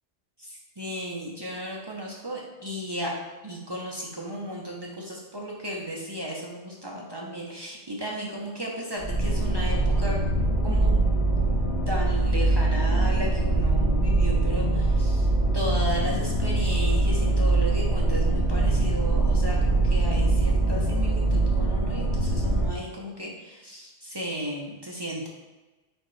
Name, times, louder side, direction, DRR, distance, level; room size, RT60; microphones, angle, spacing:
voice 1, 0.4-3.1 3.4-10.2 10.6-11.0 11.3-15.3 15.5-25.3, equal, 30° right, -3 dB, 0.5 m, -34 dB
sound 1, 9.0-22.7, right 2 dB, 85° left, 1.3 m, -23 dB
4.3 x 3.7 x 3.2 m, 1.2 s
omnidirectional pair, 1.2 m